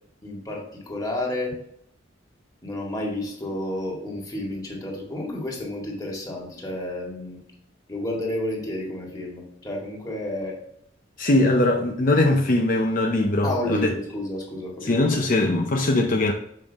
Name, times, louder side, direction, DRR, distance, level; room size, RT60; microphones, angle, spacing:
voice 1, 0.2-1.5 2.6-7.4 7.9-10.6 13.4-15.2, left 1 dB, 20° left, 2.0 m, -31 dB
voice 2, 11.2-13.9 14.8-16.3, left 2 dB, 45° left, 0.6 m, -21 dB
7.6 x 5.3 x 3.5 m
head